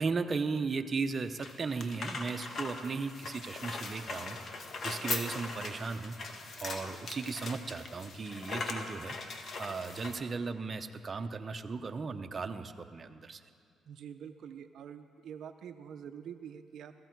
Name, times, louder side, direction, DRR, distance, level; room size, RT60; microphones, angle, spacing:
voice 1, 0.0-6.2 6.6-13.4, right 4 dB, 35° right, 7 dB, 0.7 m, -36 dB
sound 1, 1.1-10.2, left 3 dB, 55° left, 1.3 m, -40 dB
voice 2, 13.9-16.9, right 8 dB, 70° right, 8 dB, 0.5 m, -46 dB
16.5 x 14.5 x 4.6 m, 2.4 s
cardioid pair, 90°, 0 cm